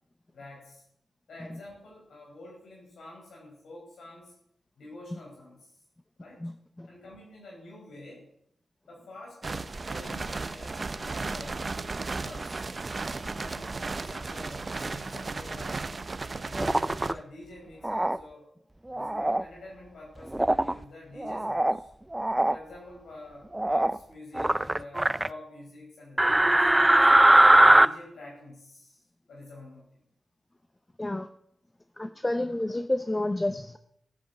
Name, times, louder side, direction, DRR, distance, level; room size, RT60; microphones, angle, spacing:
voice 1, 0.3-0.8 1.3-4.3 4.8-5.7 6.2-6.5 6.9-8.3 8.9-12.7 13.4-15.8 16.4-18.5 18.9-21.9 22.5-27.1 27.6-30.0, left 2 dB, 85° left, -3 dB, 5.5 m, -47 dB
sound 1, 9.4-17.1, right 3 dB, 40° right, 0.9 m, -35 dB
sound 2, 16.6-17.1 17.8-18.2 18.9-19.4 20.3-20.7 21.2-21.8 22.1-22.5 23.5-24.0 24.3-25.3 26.2-27.9, right 1 dB, 15° right, 0.5 m, -21 dB
voice 2, 32.0-33.8, left 1 dB, 20° left, 9 dB, 0.8 m, -29 dB
15.0 x 7.9 x 8.1 m, 0.73 s
cardioid pair, 75°, 0 cm